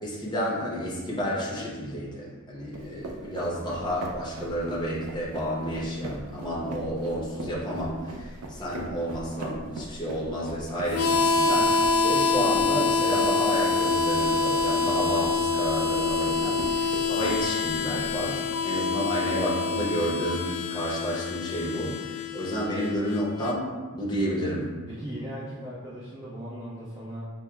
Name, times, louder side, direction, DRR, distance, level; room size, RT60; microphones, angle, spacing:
voice 1, 0.0-24.7, equal, 20° left, -6 dB, 0.8 m, -30 dB
sound 1, 2.7-18.4, right 1 dB, 90° right, 0.5 m, -40 dB
Harmonica, 10.9-23.6, left 4 dB, 85° left, 0.3 m, -26 dB
voice 2, 24.9-27.2, equal, 15° right, -9 dB, 0.5 m, -38 dB
6.0 x 2.1 x 2.3 m, 1.4 s
head